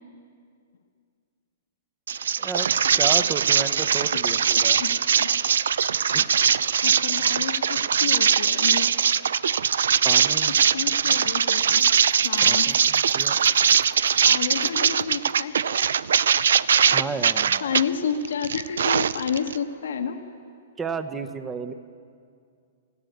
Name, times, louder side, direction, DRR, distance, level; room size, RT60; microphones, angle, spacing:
sound 1, 2.1-17.8 18.2-19.6, right 7 dB, 80° right, 0.5 m, -21 dB
voice 1, 2.4-4.8 6.1-6.3 10.0-10.6 12.5-13.4 16.9-17.6 20.8-21.7, right 5 dB, 15° right, 11 dB, 0.9 m, -33 dB
voice 2, 4.2-4.9 5.2-5.3 6.8-8.9 10.5-11.8 12.2-12.7 14.2-15.8 17.2-20.2, left 7 dB, 80° left, 5 dB, 1.4 m, -30 dB
Bell, 11.8-15.5, right 5 dB, 50° right, 1.7 m, -49 dB
19.5 x 14.5 x 9.4 m, 2.3 s
hypercardioid pair, 150°, 0 cm